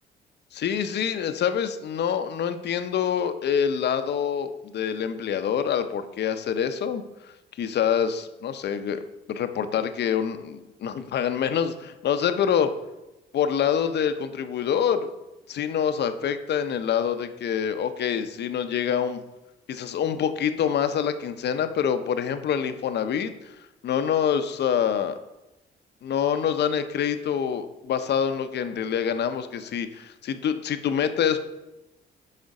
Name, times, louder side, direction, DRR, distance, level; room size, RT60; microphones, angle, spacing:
voice 1, 0.5-7.0 7.6-9.0 9.3-12.7 13.3-15.1 15.5-19.2 19.7-23.3 23.8-25.2 26.0-31.4, left 8 dB, 60° left, 10 dB, 0.6 m, -26 dB
6.5 x 5.0 x 4.8 m, 0.98 s
cardioid pair, 90°, 20 cm